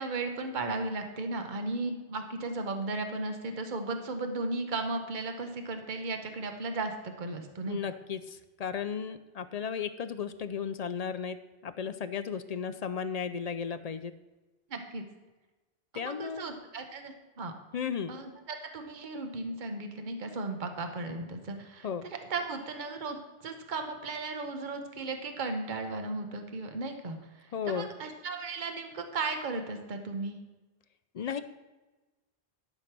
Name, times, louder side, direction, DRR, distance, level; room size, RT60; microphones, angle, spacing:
voice 1, 0.0-7.8 14.7-15.0 16.0-17.5 18.1-21.9 22.3-30.4, right 3 dB, 45° right, 5 dB, 1.2 m, -35 dB
voice 2, 7.7-11.4 11.6-14.1 15.9-16.5 17.7-18.1 21.8-22.1 27.5-27.9 31.1-31.4, left 7 dB, 55° left, 11 dB, 0.4 m, -34 dB
11.5 x 5.2 x 6.0 m, 1.2 s
omnidirectional pair, 1.1 m